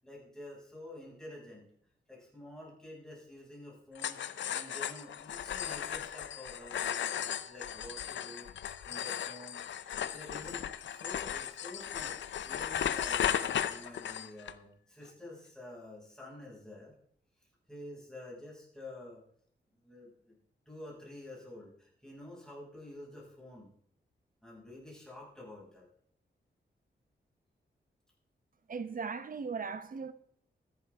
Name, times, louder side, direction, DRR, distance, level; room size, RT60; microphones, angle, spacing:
voice 1, 0.0-1.7 2.1-8.5 8.8-9.6 10.0-12.2 12.4-16.9 17.7-19.2 19.8-20.4 20.7-23.7 24.4-25.9, left 1 dB, 5° left, 6.2 m, -49 dB
sound 1, 4.0-14.5, left 9 dB, 85° left, 0.6 m, -36 dB
voice 2, 28.7-30.1, right 5 dB, 50° right, 0.9 m, -38 dB
13.5 x 11.0 x 3.5 m
wide cardioid pair, 90°, 19 cm